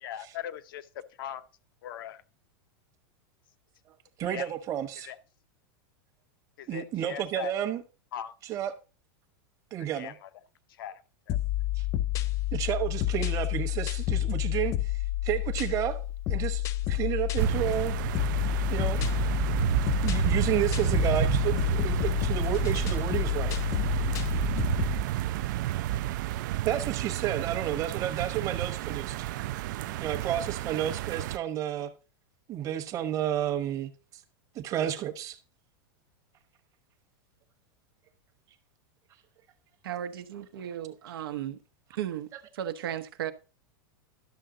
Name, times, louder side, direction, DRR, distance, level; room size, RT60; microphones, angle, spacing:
voice 1, 0.0-1.4 1.8-2.2 4.3-4.5 5.0-5.2 6.6-7.5 8.1-8.3 9.8-10.3 10.8-11.0 11.3-11.4, left 10 dB, 75° left, 0.7 m, -39 dB
voice 2, 4.2-5.1 6.7-7.8 8.5-8.7 9.7-10.1 11.8-11.9 12.5-14.9 15.2-16.0 16.3-17.9 18.7-19.0 20.0-23.5 26.6-29.3 30.0-31.9 32.5-33.9 34.5-35.4, right 11 dB, 30° right, 1.0 m, -31 dB
sound 1, 11.3-25.0, left 14 dB, 25° left, 0.4 m, -29 dB
sound 2, 17.4-31.4, right 14 dB, 60° right, 0.4 m, -30 dB
voice 3, 39.8-41.6 42.0-43.3, right 10 dB, 90° right, 0.9 m, -35 dB
11.5 x 6.7 x 3.8 m
supercardioid pair, 155°, 12 cm